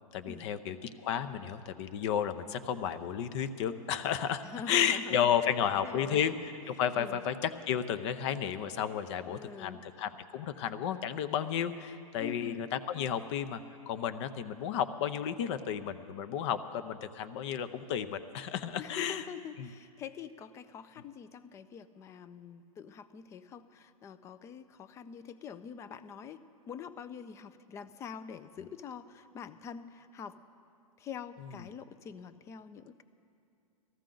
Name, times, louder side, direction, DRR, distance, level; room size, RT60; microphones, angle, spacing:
voice 1, 0.1-6.3 6.7-13.6 13.9-19.2 19.6-19.7, left 9 dB, 50° left, 12 dB, 0.7 m, -32 dB
voice 2, 4.4-6.2 7.0-7.2 9.2-9.8 12.2-12.7 18.8-26.4 26.7-30.4 31.0-33.0, left 7 dB, 15° left, 13 dB, 0.3 m, -45 dB
18.5 x 14.0 x 3.8 m, 2.5 s
hypercardioid pair, 135°, 19 cm